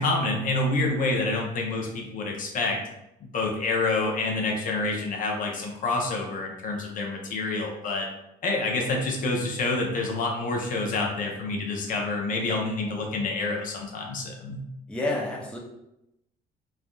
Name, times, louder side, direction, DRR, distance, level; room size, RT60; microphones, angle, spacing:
voice 1, 0.0-2.8 3.2-8.1 8.4-14.6, left 2 dB, 50° left, 0 dB, 0.6 m, -27 dB
voice 2, 14.9-15.6, left 2 dB, 5° left, -3 dB, 0.5 m, -29 dB
3.2 x 2.5 x 2.2 m, 0.87 s
cardioid pair, 110°, 17 cm